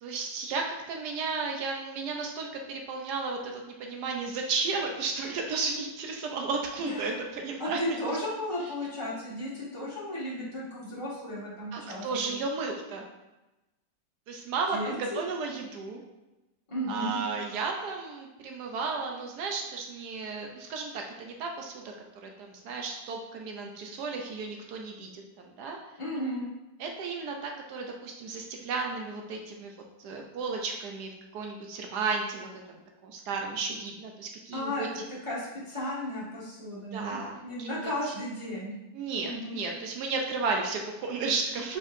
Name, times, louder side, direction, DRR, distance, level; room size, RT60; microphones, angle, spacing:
voice 1, 0.0-7.8 11.7-13.1 14.3-16.0 16.9-21.8 22.2-25.8 26.8-29.7 30.0-35.0 36.9-38.1 38.9-41.8, right 4 dB, 75° right, 2 dB, 1.2 m, -34 dB
voice 2, 6.8-7.1 7.6-12.4 14.7-15.2 16.7-17.2 26.0-26.4 34.5-34.9 35.2-38.7 39.2-39.6, left 1 dB, 20° left, -9 dB, 1.5 m, -34 dB
4.4 x 4.4 x 2.6 m, 1.0 s
omnidirectional pair, 1.8 m